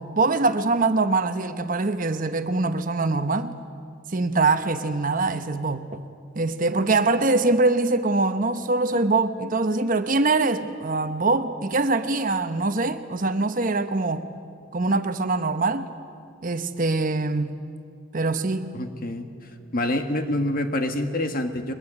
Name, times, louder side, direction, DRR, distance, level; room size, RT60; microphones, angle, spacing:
voice 1, 0.0-3.5 4.1-6.0 6.3-14.2 14.7-15.9 16.4-17.6 18.1-18.7, right 3 dB, 40° right, 9 dB, 1.0 m, -23 dB
voice 2, 18.7-19.3 19.7-21.7, left 1 dB, 45° left, 6 dB, 1.7 m, -26 dB
22.5 x 21.0 x 9.8 m, 2.4 s
head